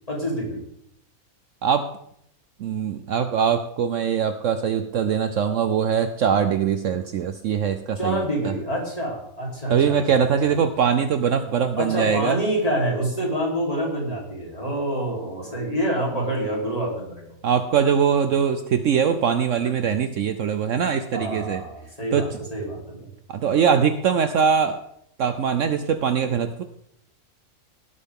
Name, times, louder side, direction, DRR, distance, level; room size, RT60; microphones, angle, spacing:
voice 1, 0.1-0.6 8.0-10.0 11.8-17.2 21.1-23.1, equal, 25° left, -3 dB, 3.9 m, -27 dB
voice 2, 2.6-8.5 9.7-12.4 17.4-21.6 22.1-22.3 23.3-24.8 25.2-26.6, right 7 dB, 65° right, 9 dB, 1.0 m, -22 dB
17.0 x 8.1 x 3.7 m, 0.72 s
omnidirectional pair, 1.6 m